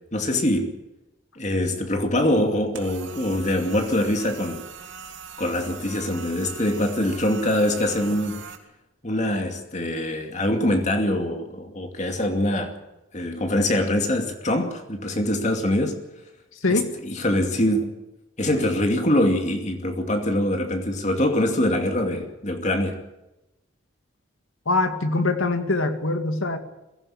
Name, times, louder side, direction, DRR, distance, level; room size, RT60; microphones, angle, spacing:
voice 1, 0.1-0.8 1.4-4.7 5.4-8.5 9.0-12.7 13.1-16.0 16.7-17.9 18.4-23.0, left 1 dB, 35° left, 2.6 m, -24 dB
sound 1, 2.7-8.6, right 6 dB, 65° right, 3.0 m, -41 dB
voice 2, 16.6-16.9 24.7-26.6, left 2 dB, 85° left, 2.3 m, -23 dB
22.0 x 16.5 x 8.8 m
head